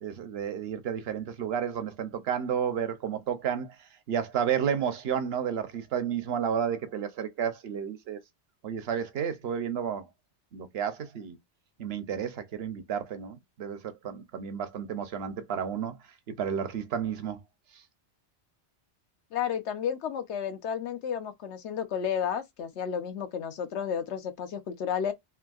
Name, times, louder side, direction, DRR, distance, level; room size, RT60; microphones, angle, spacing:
voice 1, 0.0-3.8 4.1-8.2 8.6-10.1 10.5-11.3 11.8-16.0 16.3-17.4, right 8 dB, 65° right, 0.9 m, -31 dB
voice 2, 19.3-25.1, left 8 dB, 80° left, 1.0 m, -32 dB
3.4 x 2.7 x 2.3 m
omnidirectional pair, 1.1 m